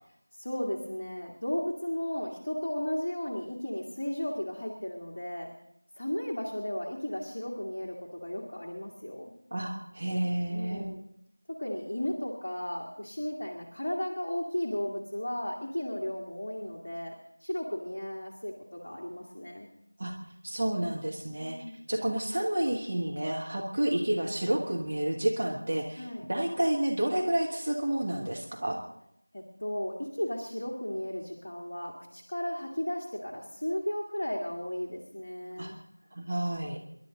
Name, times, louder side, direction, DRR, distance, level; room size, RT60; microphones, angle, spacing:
voice 1, 0.3-5.5 5.9-9.3 10.5-11.0 11.5-19.7 21.4-21.8 26.0-26.2 29.3-35.7, left 1 dB, 30° left, -3 dB, 1.7 m, -35 dB
voice 2, 9.5-10.9 20.0-20.2 20.4-21.6 21.9-28.8 35.6-35.7 36.1-36.8, right 1 dB, 25° right, 0 dB, 1.2 m, -30 dB
27.5 x 11.5 x 3.8 m, 0.77 s
figure-of-eight pair, 175°, 0 cm